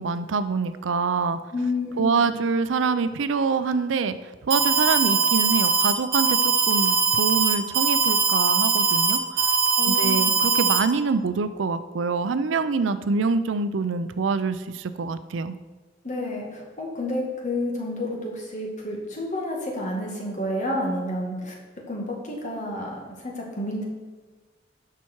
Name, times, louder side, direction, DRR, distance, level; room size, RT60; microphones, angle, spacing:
voice 1, 0.0-1.4 2.0-4.2 4.4-9.4 9.8-15.5, right 4 dB, 80° right, 12 dB, 0.5 m, -25 dB
voice 2, 1.5-2.3 9.8-10.3 16.0-21.5 21.9-23.9, left 1 dB, 40° left, -1 dB, 2.0 m, -30 dB
Alarm, 4.5-10.8, right 5 dB, 55° right, 1.2 m, -21 dB
10.5 x 5.8 x 4.6 m, 1.3 s
head